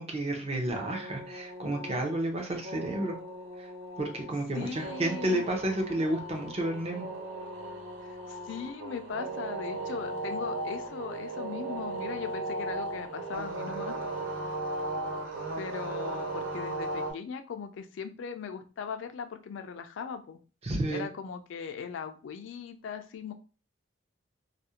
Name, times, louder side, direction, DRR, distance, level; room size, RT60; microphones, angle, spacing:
voice 1, 0.0-3.2 3.6-3.7 4.0-7.1 20.6-21.0, right 1 dB, 30° right, 2 dB, 0.5 m, -31 dB
sound 1, 0.7-17.1, right 2 dB, 80° right, 0.6 m, -37 dB
voice 2, 4.5-5.4 8.0-14.0 15.6-20.4 20.9-23.3, left 6 dB, 70° left, 7 dB, 0.3 m, -39 dB
2.4 x 2.0 x 2.8 m, 0.35 s
head